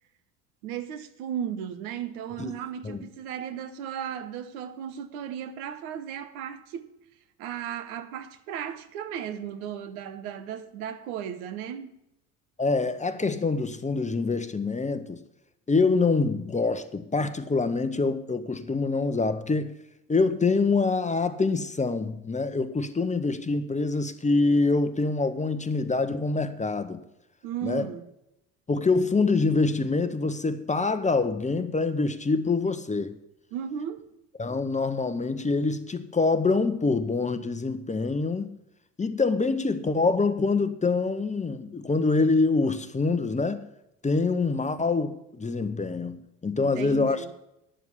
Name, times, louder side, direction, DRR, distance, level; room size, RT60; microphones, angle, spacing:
voice 1, 0.6-6.9 7.4-11.9 27.4-28.0 33.5-34.1 46.6-47.3, right 9 dB, 75° right, 1.1 m, -35 dB
voice 2, 12.6-15.2 15.7-19.7 20.1-27.0 27.6-27.9 28.7-33.2 34.4-38.5 39.0-43.6 44.0-47.3, left 3 dB, 15° left, 1.0 m, -25 dB
10.0 x 7.1 x 9.3 m
hypercardioid pair, 70°, 44 cm